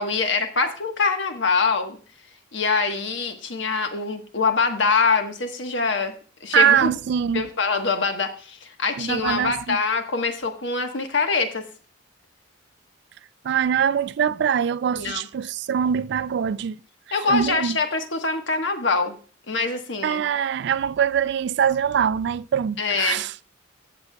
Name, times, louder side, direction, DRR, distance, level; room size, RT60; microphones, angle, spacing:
voice 1, 0.0-2.0 2.5-6.1 6.4-7.0 7.3-11.6 14.9-15.3 17.1-19.2 19.5-20.2 22.8-23.2, left 4 dB, 70° left, 1.3 m, -24 dB
voice 2, 6.5-7.4 9.0-9.8 13.4-16.8 17.3-17.8 20.0-23.3, right 8 dB, 60° right, 0.3 m, -23 dB
15.5 x 7.0 x 2.3 m
head